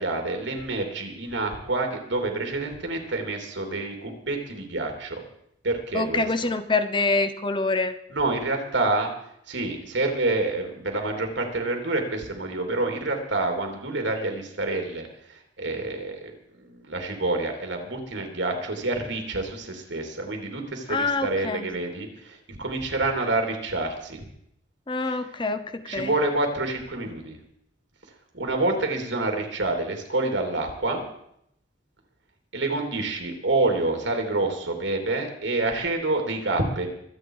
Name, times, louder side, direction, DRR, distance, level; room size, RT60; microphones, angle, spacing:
voice 1, 0.0-5.2 5.6-6.2 8.1-9.1 9.5-16.3 16.8-24.2 25.0-25.2 25.9-27.4 28.3-31.0 32.5-36.9, right 2 dB, 85° right, 3 dB, 3.2 m, -27 dB
voice 2, 5.9-7.9 20.9-21.7 24.9-26.1, left 3 dB, 25° left, 11 dB, 0.8 m, -26 dB
24.5 x 8.6 x 4.9 m, 0.74 s
head